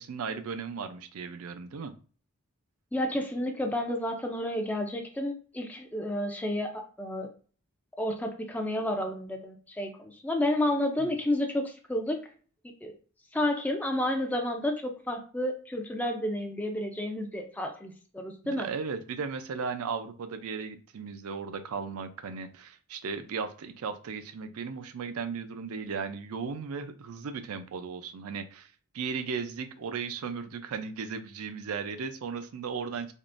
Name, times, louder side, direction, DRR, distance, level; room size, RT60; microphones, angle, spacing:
voice 1, 0.0-1.9 11.0-11.1 18.4-33.1, right 5 dB, 80° right, 9 dB, 0.4 m, -36 dB
voice 2, 2.9-7.3 8.0-12.2 12.8-12.9 13.3-18.7, left 1 dB, 5° left, 3 dB, 0.3 m, -31 dB
3.5 x 2.4 x 2.5 m, 0.40 s
head